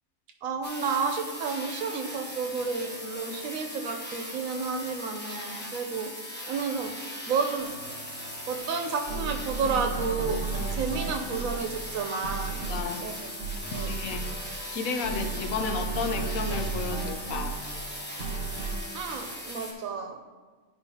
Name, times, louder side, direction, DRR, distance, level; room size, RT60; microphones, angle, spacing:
voice 1, 0.4-6.1 6.5-7.0 7.3-7.7 8.1-8.2 8.5-10.4 10.7-12.6 13.0-13.1 13.6-13.9 18.9-20.2, right 5 dB, 85° right, 4 dB, 1.1 m, -31 dB
sound 1, 0.6-19.7, equal, 10° left, 0.9 m, -39 dB
sound 2, 7.6-19.3, right 4 dB, 60° right, 1.2 m, -35 dB
voice 2, 12.6-13.0 13.8-14.3 14.7-17.8, left 5 dB, 90° left, 5 dB, 1.1 m, -33 dB
11.5 x 4.7 x 2.8 m, 1.4 s
omnidirectional pair, 1.4 m